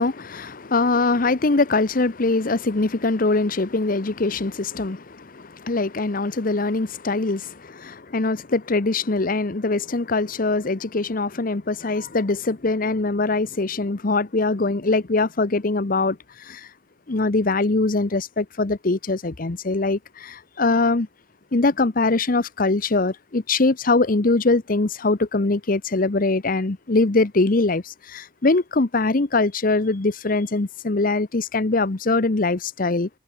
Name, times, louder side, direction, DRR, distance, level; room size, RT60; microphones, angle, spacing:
voice 1, 0.0-16.2 16.5-16.7 17.1-21.1 21.5-33.1, left 3 dB, 50° left, 0.9 m, -22 dB
head